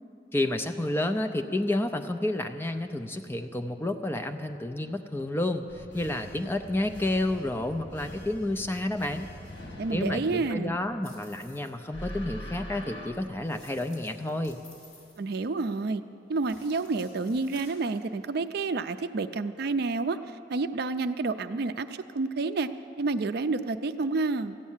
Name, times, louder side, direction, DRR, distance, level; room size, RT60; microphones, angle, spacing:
voice 1, 0.3-9.3 9.9-14.6, left 1 dB, 10° left, 6 dB, 0.5 m, -30 dB
sound 1, 5.7-11.5 11.9-13.1, equal, 85° left, 1.8 m, -43 dB
voice 2, 9.8-10.8 15.2-16.0 16.3-20.2 20.5-22.7 23.0-24.6, right 3 dB, 55° right, 10 dB, 0.4 m, -29 dB
sound 2, 11.0-11.8 13.4-15.8 16.3-18.0, left 1 dB, 40° left, 3.9 m, -54 dB
14.0 x 9.4 x 7.3 m, 2.6 s
head